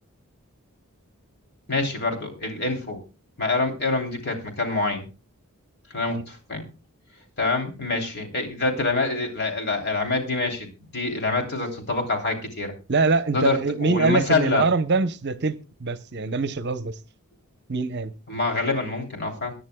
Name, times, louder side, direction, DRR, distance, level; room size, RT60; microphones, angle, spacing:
voice 1, 1.7-3.0 3.4-5.1 5.9-6.6 7.4-12.7 13.3-14.7 18.3-19.5, left 3 dB, 50° left, 3.2 m, -26 dB
voice 2, 12.9-17.0 17.7-18.1, right 3 dB, 50° right, 0.8 m, -24 dB
23.5 x 10.5 x 2.3 m
head